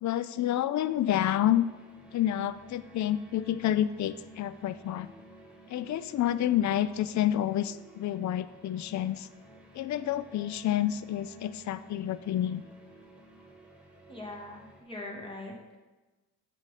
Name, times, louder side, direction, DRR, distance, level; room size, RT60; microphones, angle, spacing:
voice 1, 0.0-1.7 2.1-5.1 5.7-9.3 9.7-12.6, left 11 dB, 50° left, 15 dB, 0.4 m, -29 dB
sound 1, 0.7-14.8, equal, 5° right, 1.7 m, -53 dB
voice 2, 14.1-15.8, left 2 dB, 15° left, -1 dB, 2.3 m, -42 dB
7.9 x 5.8 x 4.2 m, 1.2 s
supercardioid pair, 60°, 38 cm